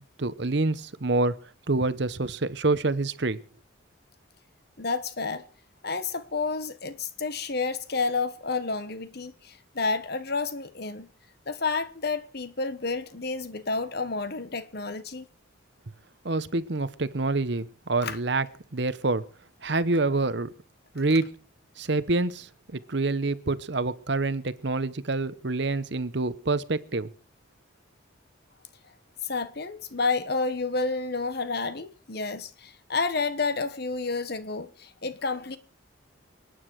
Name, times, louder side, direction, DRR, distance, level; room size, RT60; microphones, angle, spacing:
voice 1, 0.2-1.3 1.7-3.4 16.2-18.5 18.7-19.2 19.6-20.5 20.9-21.4 21.8-27.1, right 3 dB, 55° right, 0.9 m, -27 dB
voice 2, 4.8-5.4 5.8-11.1 11.5-15.2 18.0-18.2 29.2-35.6, left 4 dB, 50° left, 1.2 m, -30 dB
28.5 x 9.7 x 4.7 m
head